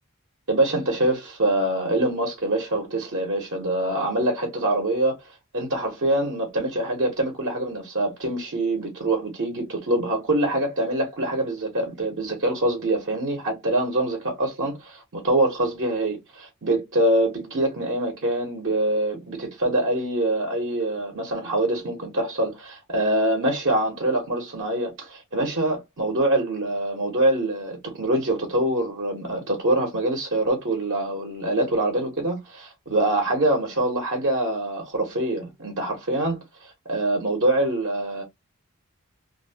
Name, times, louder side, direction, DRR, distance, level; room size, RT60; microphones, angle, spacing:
voice 1, 0.5-5.2 5.5-38.2, right 1 dB, 55° right, 0.8 m, -24 dB
2.6 x 2.1 x 2.6 m
head